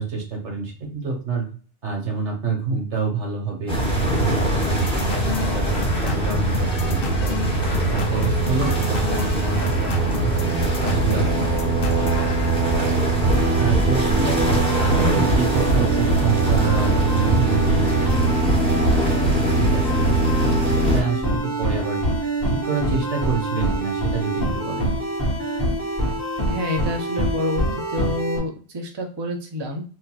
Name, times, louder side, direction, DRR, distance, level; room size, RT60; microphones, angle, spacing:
voice 1, 0.0-1.5 1.8-7.4 7.8-22.0 22.5-24.9, right 4 dB, 75° right, 0 dB, 1.4 m, -28 dB
sound 1, 3.7-21.0, right 2 dB, 5° left, 0.7 m, -22 dB
sound 2, 4.6-12.8, left 4 dB, 60° left, 0.7 m, -30 dB
sound 3, 13.2-28.4, right 1 dB, 15° right, 1.4 m, -25 dB
voice 2, 14.9-15.2 26.5-29.8, left 2 dB, 35° right, 2 dB, 0.4 m, -27 dB
3.8 x 2.4 x 2.3 m, 0.40 s
omnidirectional pair, 1.2 m